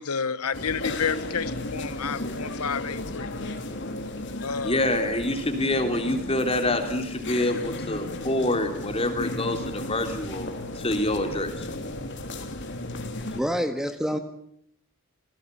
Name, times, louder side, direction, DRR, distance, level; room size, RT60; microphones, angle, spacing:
voice 1, 0.0-3.3 4.4-4.8, left 6 dB, 85° left, 14 dB, 1.0 m, -30 dB
sound 1, 0.5-13.4, left 1 dB, 55° left, 3.2 m, -34 dB
voice 2, 4.6-10.5 10.8-11.5, left 1 dB, 25° left, 5 dB, 3.6 m, -26 dB
voice 3, 13.3-14.2, equal, ahead, 8 dB, 1.5 m, -27 dB
28.0 x 18.5 x 8.5 m, 0.70 s
head